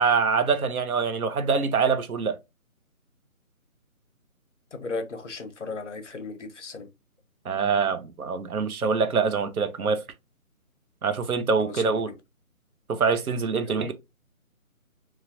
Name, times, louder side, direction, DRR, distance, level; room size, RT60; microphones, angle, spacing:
voice 1, 0.0-2.4 7.4-10.0 11.0-12.1 12.9-13.9, right 5 dB, 80° right, 0.7 m, -24 dB
voice 2, 4.7-6.9 11.6-12.2 13.6-13.9, left 3 dB, 55° left, 0.7 m, -36 dB
3.2 x 2.3 x 2.5 m
figure-of-eight pair, 165°, 43 cm